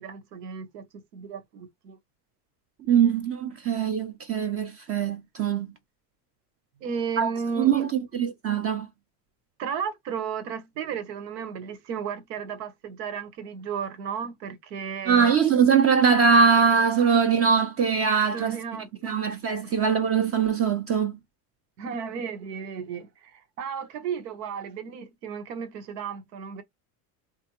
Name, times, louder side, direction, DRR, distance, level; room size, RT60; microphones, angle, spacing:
voice 1, 0.0-2.0 6.8-7.9 9.6-15.3 18.3-19.2 19.6-19.7 21.8-26.6, right 6 dB, 90° right, 1.1 m, -34 dB
voice 2, 2.9-5.7 7.2-7.3 7.6-8.9 15.1-18.6 19.0-21.2, right 6 dB, 30° right, 0.5 m, -22 dB
3.6 x 2.5 x 2.9 m
supercardioid pair, 110°, 47 cm